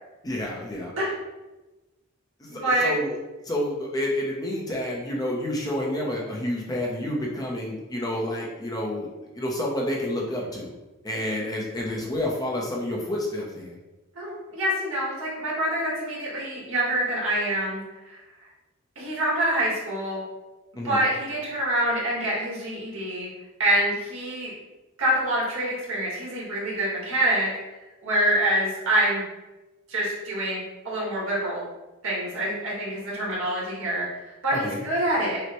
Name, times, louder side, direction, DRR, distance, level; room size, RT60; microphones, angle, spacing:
voice 1, 0.2-0.9 2.4-3.2 3.4-9.1 9.3-10.8 11.0-13.8 20.8-21.0 34.5-34.8, left 1 dB, 15° left, -2 dB, 0.5 m, -29 dB
voice 2, 2.5-2.9 14.1-18.2 18.9-20.2 20.8-23.3 23.6-24.5 25.0-27.5 28.0-29.2 29.9-31.6 32.0-35.4, right 1 dB, 70° right, -6 dB, 1.5 m, -26 dB
6.0 x 2.1 x 2.9 m, 1.1 s
head